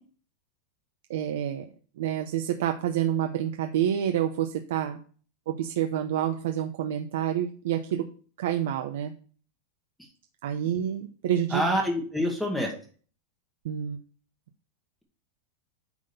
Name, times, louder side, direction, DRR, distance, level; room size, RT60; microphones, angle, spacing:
voice 1, 1.1-1.6 2.0-5.0 5.5-8.0 8.4-9.1 10.4-11.6 13.6-14.0, right 10 dB, 70° right, 6 dB, 0.8 m, -28 dB
voice 2, 11.5-12.7, equal, ahead, -1 dB, 1.3 m, -26 dB
9.3 x 3.7 x 6.8 m, 0.43 s
supercardioid pair, 165°, 0 cm